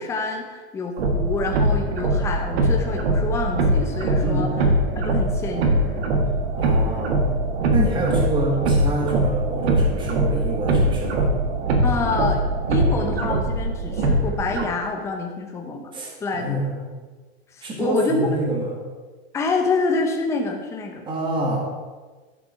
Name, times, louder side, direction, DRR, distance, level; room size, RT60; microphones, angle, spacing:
voice 1, 0.0-4.5 4.9-6.1 11.8-12.4 12.7-15.9 16.2-16.6 17.5-18.3 19.3-21.0, left 3 dB, 10° left, 2 dB, 0.8 m, -27 dB
sound 1, 1.0-14.6, right 1 dB, 80° right, 1.7 m, -22 dB
voice 2, 4.2-4.5 6.2-7.3 7.7-11.3 15.9-16.9 17.6-18.8 21.1-21.6, right 2 dB, 15° right, -1 dB, 2.0 m, -27 dB
11.5 x 5.9 x 5.8 m, 1.3 s
supercardioid pair, 160°, 31 cm